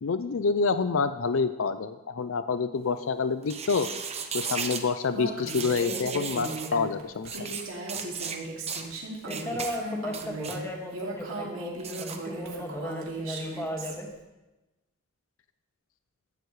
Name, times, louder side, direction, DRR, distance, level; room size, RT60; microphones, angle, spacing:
voice 1, 0.0-3.9 4.3-7.6, left 4 dB, 70° left, 11 dB, 0.5 m, -27 dB
sound 1, 3.4-4.8 5.5-6.7 7.2-7.6 7.9-8.4 8.7-8.9 9.3-9.7 10.1-10.6 11.8-12.2, right 6 dB, 30° right, 1.0 m, -35 dB
Female speech woman speaking, 5.1-13.9, right 2 dB, 80° right, 2.5 m, -37 dB
voice 2, 9.3-14.1, equal, 15° left, 0 dB, 2.0 m, -35 dB
16.0 x 11.5 x 3.3 m, 1.1 s
head